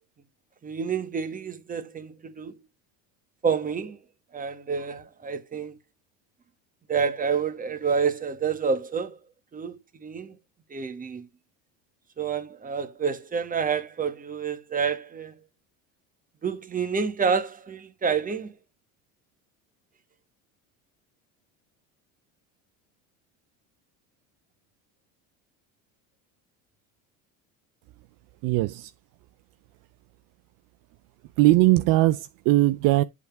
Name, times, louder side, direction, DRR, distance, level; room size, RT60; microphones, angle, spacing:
voice 1, 0.6-2.6 3.4-4.0 4.3-5.7 6.9-9.2 9.5-10.4 10.7-11.3 12.2-15.3 16.4-18.5, right 6 dB, 20° right, 1.3 m, -28 dB
voice 2, 28.4-28.9 31.4-33.0, right 17 dB, 60° right, 0.5 m, -20 dB
8.3 x 3.6 x 5.8 m
supercardioid pair, 115°, 38 cm